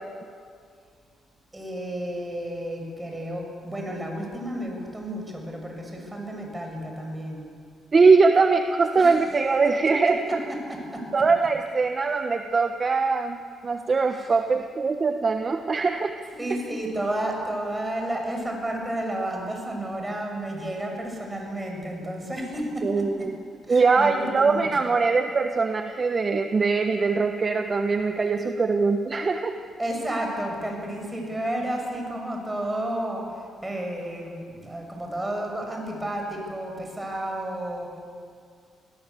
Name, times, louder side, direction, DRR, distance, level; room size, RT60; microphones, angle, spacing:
voice 1, 1.5-7.4 9.0-9.2 10.7-11.0 14.1-14.3 16.3-23.3 23.7-24.9 29.8-38.0, right 1 dB, 15° right, 1 dB, 6.8 m, -32 dB
voice 2, 7.9-10.2 11.1-13.4 13.6-16.2 22.8-23.4 23.7-29.5, right 4 dB, 35° right, 6 dB, 1.1 m, -22 dB
25.0 x 17.0 x 8.5 m, 2.2 s
cardioid pair, 90°, 0 cm